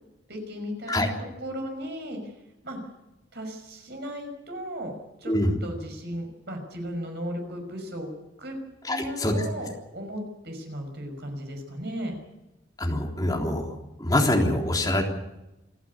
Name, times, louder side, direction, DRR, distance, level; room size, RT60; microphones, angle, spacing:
voice 1, 0.3-1.1 1.4-2.3 2.6-2.8 3.3-4.9 5.2-5.4 5.6-8.1 8.4-8.6 8.9-12.2, equal, 60° right, 4 dB, 5.7 m, -35 dB
voice 2, 8.9-9.3 12.8-13.7 14.0-15.0, left 1 dB, 20° left, 0 dB, 3.7 m, -24 dB
27.5 x 11.5 x 9.7 m, 0.97 s
head